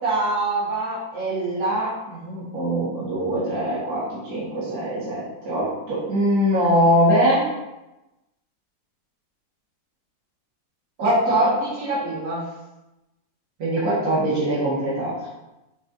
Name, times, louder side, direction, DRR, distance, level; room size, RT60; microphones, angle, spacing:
voice 1, 0.0-7.5 11.0-12.4 13.6-15.1, right 1 dB, 50° right, -10 dB, 2.3 m, -23 dB
7.3 x 4.7 x 2.7 m, 0.99 s
omnidirectional pair, 2.0 m